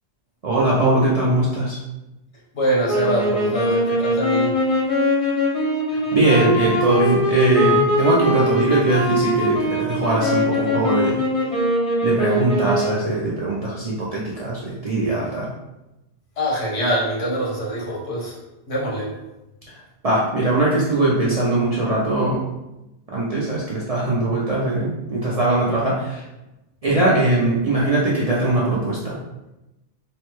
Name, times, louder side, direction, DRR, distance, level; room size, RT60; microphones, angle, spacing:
voice 1, 0.4-1.8 5.9-11.2 12.0-15.5 20.0-22.4 23.1-26.2 26.8-29.2, right 2 dB, 50° right, -6 dB, 0.4 m, -20 dB
voice 2, 2.5-4.5 16.4-18.3 18.7-19.1, equal, 85° left, -5 dB, 1.4 m, -24 dB
sound 1, 2.9-13.2, left 1 dB, 35° left, 0.7 m, -21 dB
3.2 x 2.1 x 3.0 m, 0.97 s
omnidirectional pair, 1.2 m